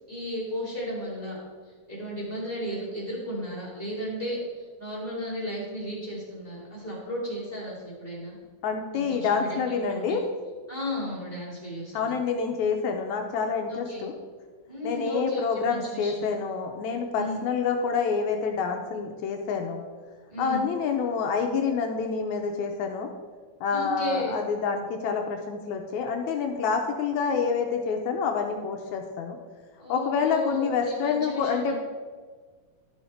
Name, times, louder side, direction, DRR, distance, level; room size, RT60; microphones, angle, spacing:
voice 1, 0.1-1.4 1.9-8.4 8.9-10.2 10.7-12.2 13.7-14.1 14.7-16.2 17.1-17.4 20.3-20.7 23.7-24.3 29.8-31.7, equal, 15° right, -7 dB, 2.7 m, -34 dB
voice 2, 8.6-10.2 11.9-14.1 14.8-19.9 20.4-23.1 23.6-29.4 29.9-31.7, left 5 dB, 80° left, 4 dB, 2.0 m, -27 dB
12.0 x 5.7 x 4.4 m, 1.5 s
omnidirectional pair, 3.4 m